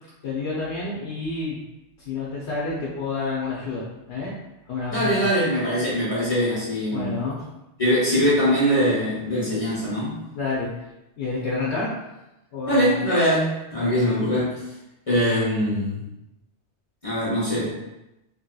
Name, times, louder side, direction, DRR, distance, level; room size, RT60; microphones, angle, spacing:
voice 1, 0.2-1.6 2.0-4.3 4.7-5.2 6.9-7.4 10.3-10.7 11.2-11.9 12.5-12.8 13.8-13.9, left 3 dB, 75° left, -6 dB, 0.9 m, -29 dB
voice 2, 4.9-7.2 7.8-10.2 12.7-14.6 15.1-16.0 17.0-17.8, equal, 35° left, -8 dB, 1.0 m, -22 dB
2.9 x 2.7 x 2.2 m, 0.93 s
omnidirectional pair, 1.1 m